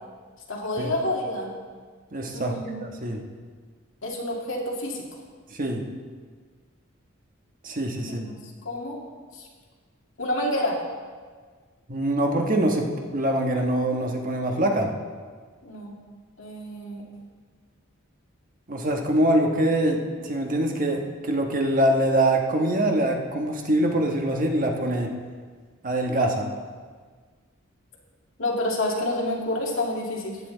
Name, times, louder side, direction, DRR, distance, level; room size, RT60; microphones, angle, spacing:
voice 1, 0.5-1.5 2.3-2.8 4.0-5.0 8.0-8.4 8.6-9.0 9.3-9.5 10.2-10.8 15.6-15.9 16.4-17.0 28.4-30.4, left 1 dB, 70° left, -2 dB, 2.2 m, -28 dB
voice 2, 2.1-3.2 5.5-5.8 7.6-8.3 11.9-14.9 18.7-25.1 25.8-26.5, right 1 dB, 40° right, 2 dB, 1.3 m, -24 dB
14.5 x 9.6 x 3.9 m, 1.5 s
head